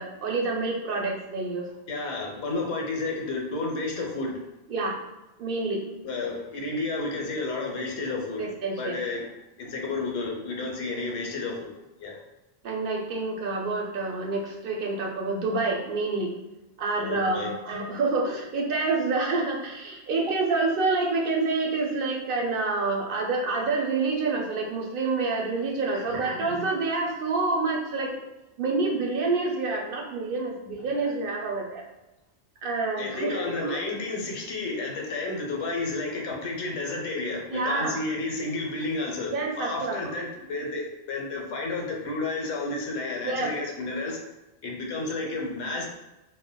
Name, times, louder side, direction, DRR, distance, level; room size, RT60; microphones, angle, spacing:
voice 1, 0.0-1.7 4.7-5.0 5.4-5.8 8.4-9.0 12.6-16.3 16.8-28.1 28.6-31.8 32.6-34.0 37.5-38.0 39.3-40.0 43.2-43.5, right 3 dB, 60° right, 0 dB, 0.7 m, -28 dB
voice 2, 1.9-4.4 6.0-8.5 8.8-9.2 9.6-11.7 12.0-12.2 17.0-17.5 25.9-26.2 33.0-44.2 44.6-45.8, left 3 dB, 85° left, 0 dB, 0.9 m, -31 dB
3.5 x 2.0 x 2.2 m, 0.98 s
omnidirectional pair, 1.1 m